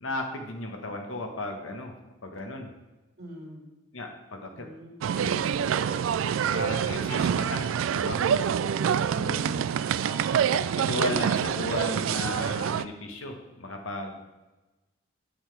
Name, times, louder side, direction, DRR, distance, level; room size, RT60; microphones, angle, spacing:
voice 1, 0.0-1.9 2.2-2.7 3.9-4.7 5.1-5.5 6.5-8.2 10.5-14.2, left 2 dB, 80° left, 3 dB, 1.3 m, -35 dB
voice 2, 3.2-3.7 4.5-4.9 9.1-9.6 10.0-10.5, right 1 dB, 55° right, -1 dB, 2.4 m, -41 dB
sound 1, 5.0-12.8, right 8 dB, 80° right, 0.3 m, -26 dB
8.4 x 7.8 x 3.4 m, 1.1 s
head